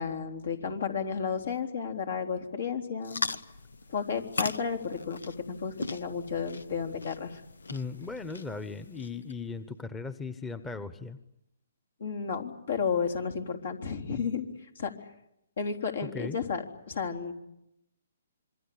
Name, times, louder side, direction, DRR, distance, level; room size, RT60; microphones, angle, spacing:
voice 1, 0.0-3.2 3.9-7.4 12.0-14.9 15.6-17.3, left 6 dB, 70° left, 5 dB, 3.7 m, -32 dB
sound 1, 3.0-9.3, left 3 dB, 90° left, 1.1 m, -39 dB
voice 2, 7.7-11.2 16.0-16.4, left 4 dB, 10° left, 12 dB, 1.0 m, -37 dB
26.5 x 23.5 x 8.6 m, 0.83 s
hypercardioid pair, 145°, 0 cm